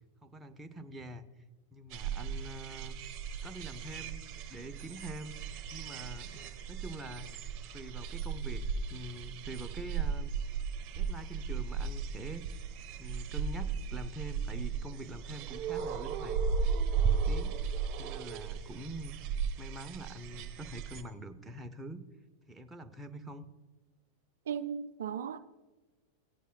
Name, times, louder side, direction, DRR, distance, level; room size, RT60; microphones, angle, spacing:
voice 1, 0.2-1.2 1.7-3.0 3.4-4.2 4.5-5.4 5.7-7.3 7.7-8.6 8.9-10.3 10.9-12.5 13.0-16.4 17.1-17.6 18.0-19.2 19.6-22.0 22.5-23.4, right 1 dB, 10° right, 0.7 m, -45 dB
sound 1, 1.9-21.0, right 6 dB, 35° right, 1.2 m, -36 dB
voice 2, 24.5-25.4, right 8 dB, 60° right, 0.4 m, -36 dB
16.5 x 10.0 x 2.3 m
figure-of-eight pair, 90°, 0 cm